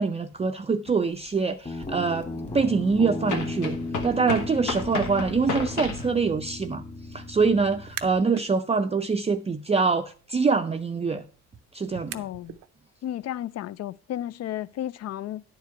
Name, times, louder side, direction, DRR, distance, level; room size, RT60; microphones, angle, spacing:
voice 1, 0.0-2.3 2.5-3.8 4.0-6.8 7.1-11.2 11.7-12.2, right 4 dB, 20° right, 0.5 m, -24 dB
sound 1, 0.9-1.0 3.3-6.1, left 4 dB, 75° left, 1.5 m, -32 dB
Guitar, 1.6-8.2, left 2 dB, 25° left, 1.7 m, -35 dB
sound 2, 7.8-8.5 8.9-12.7, right 12 dB, 85° right, 0.6 m, -44 dB
voice 2, 12.1-12.6 13.0-15.4, left 12 dB, 55° left, 0.4 m, -33 dB
10.0 x 4.7 x 5.8 m
cardioid pair, 90°, 30 cm